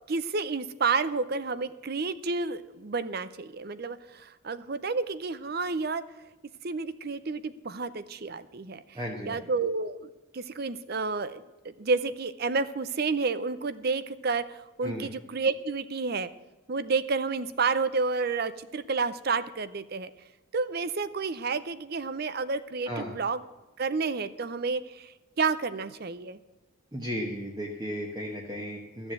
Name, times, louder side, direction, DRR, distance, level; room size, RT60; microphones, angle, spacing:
voice 1, 0.1-6.0 6.6-8.8 9.2-14.4 14.8-16.3 16.7-20.1 20.5-23.4 23.8-25.1 25.4-26.4, right 4 dB, 50° right, 14 dB, 0.6 m, -30 dB
voice 2, 8.9-9.5 14.8-15.1 22.9-23.1 26.9-29.1, equal, 20° right, -1 dB, 1.1 m, -35 dB
13.0 x 7.1 x 7.8 m, 1.1 s
head